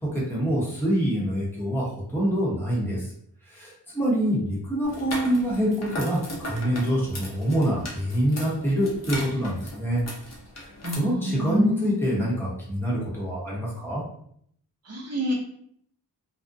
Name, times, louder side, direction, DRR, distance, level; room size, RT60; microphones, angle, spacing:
voice 1, 0.0-3.1 3.5-10.0 10.6-10.7 11.0-14.0, equal, 5° left, -5 dB, 0.8 m, -25 dB
sound 1, 4.8-10.9, left 1 dB, 40° left, 0.7 m, -37 dB
voice 2, 10.8-12.0 14.8-15.3, equal, 40° right, -1 dB, 0.7 m, -27 dB
2.4 x 2.1 x 2.5 m, 0.67 s
wide cardioid pair, 85°, 39 cm